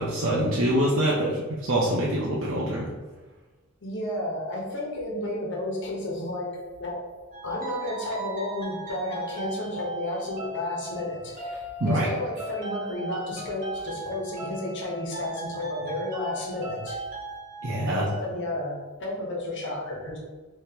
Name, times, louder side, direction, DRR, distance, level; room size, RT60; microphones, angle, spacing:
voice 1, 0.0-2.9 11.8-12.1 17.6-18.1, right 1 dB, 65° right, -6 dB, 0.7 m, -25 dB
voice 2, 3.8-7.0 7.4-17.0 18.2-20.2, left 1 dB, 60° left, -2 dB, 1.1 m, -32 dB
sound 1, 7.3-18.2, right 2 dB, 40° right, 1.3 m, -37 dB
5.0 x 3.1 x 2.9 m, 1.2 s
head